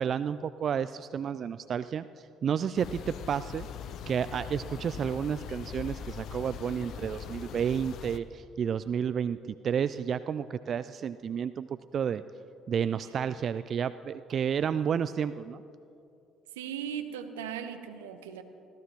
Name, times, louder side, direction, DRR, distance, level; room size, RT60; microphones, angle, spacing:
voice 1, 0.0-3.7 4.1-12.2 12.7-15.6, right 8 dB, 50° right, 14 dB, 0.3 m, -31 dB
sound 1, 2.8-8.2, left 8 dB, 60° left, 0.7 m, -41 dB
voice 2, 16.5-18.4, right 8 dB, 80° right, 8 dB, 0.9 m, -38 dB
25.0 x 16.5 x 3.0 m, 2.8 s
hypercardioid pair, 55°, 0 cm